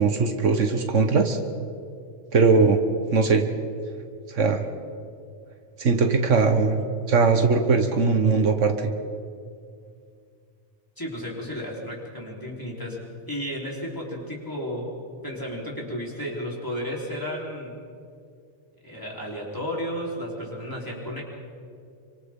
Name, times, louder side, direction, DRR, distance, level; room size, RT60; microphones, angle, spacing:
voice 1, 0.0-1.4 2.3-2.8 3.1-3.4 4.3-4.6 5.8-8.9, right 4 dB, 75° right, 5 dB, 1.5 m, -20 dB
voice 2, 11.0-13.0 13.3-14.9 15.2-17.8 18.8-21.2, equal, 15° left, -4 dB, 3.9 m, -33 dB
28.0 x 24.5 x 3.7 m, 2.3 s
omnidirectional pair, 1.3 m